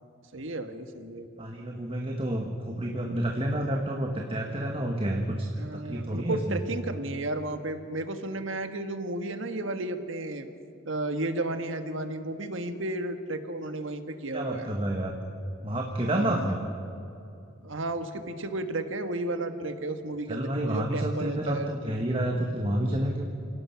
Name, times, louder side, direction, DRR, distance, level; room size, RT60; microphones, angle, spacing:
voice 1, 0.3-1.5 5.5-10.4 10.8-14.7 16.1-16.6 17.6-21.7, right 2 dB, 80° right, 8 dB, 1.5 m, -33 dB
voice 2, 1.4-6.6 14.3-15.3 15.6-16.6 20.3-23.3, right 1 dB, 30° right, 1 dB, 1.4 m, -29 dB
28.0 x 17.5 x 5.8 m, 2.7 s
head